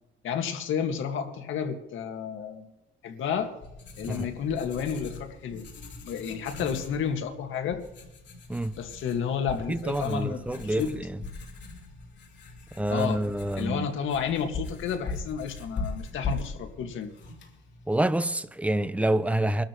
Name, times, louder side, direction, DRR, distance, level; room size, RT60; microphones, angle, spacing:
voice 1, 0.2-2.7 3.0-3.5 4.0-5.7 6.0-7.8 8.8-10.9 12.9-13.2 13.6-17.1, left 7 dB, 80° left, 1.9 m, -31 dB
Writing, 3.2-18.0, left 3 dB, 60° left, 3.5 m, -40 dB
voice 2, 9.7-11.1 12.8-13.9 17.9-19.6, right 1 dB, 5° right, 0.8 m, -27 dB
24.5 x 12.5 x 3.1 m
cardioid pair, 90°, 20 cm